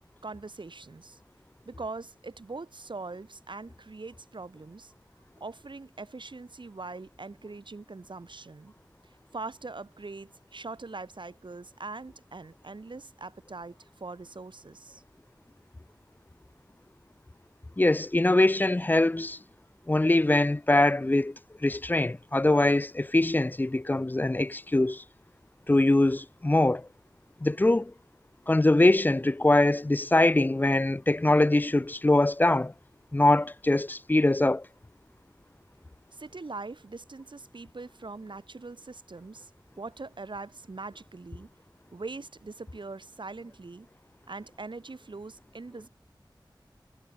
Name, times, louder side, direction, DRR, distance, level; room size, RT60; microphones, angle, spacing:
voice 1, 0.2-1.2 1.7-4.9 5.4-8.7 9.3-15.0 36.1-39.5 39.8-41.5 41.9-43.9 44.3-45.9, right 3 dB, 75° right, 2.6 m, -42 dB
voice 2, 17.8-19.4 19.9-21.3 21.6-25.0 25.7-26.9 27.4-27.9 28.5-32.7 33.1-34.7, left 2 dB, 25° left, 0.4 m, -23 dB
wide cardioid pair, 45°, 8 cm